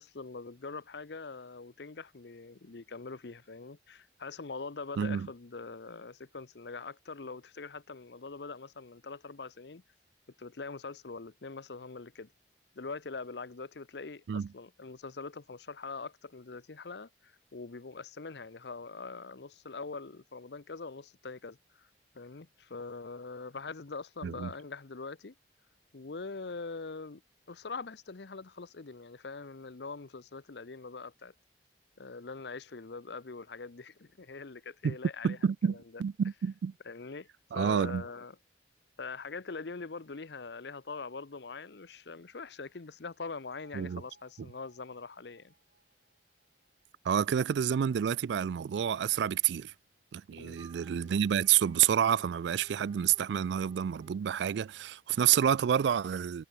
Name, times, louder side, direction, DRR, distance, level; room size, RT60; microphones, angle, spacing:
voice 1, 0.0-9.8 10.4-12.3 12.7-21.9 22.1-25.3 25.9-27.2 27.5-31.3 32.0-35.4 35.7-35.8 36.9-37.3 37.5-38.4 39.0-45.5 50.4-50.6, left 4 dB, 70° left, 0.8 m, -43 dB
voice 2, 5.0-5.3 14.3-14.5 24.2-24.5 34.8-35.0 35.2-36.7 37.5-38.0 43.7-44.0 44.4-44.5 47.0-49.7 50.1-56.4, right 9 dB, 75° right, 0.3 m, -29 dB
Bell, 43.5-47.6, right 3 dB, 55° right, 2.8 m, -66 dB
Wind instrument woodwind instrument, 50.5-54.2, right 2 dB, 25° right, 1.8 m, -59 dB
head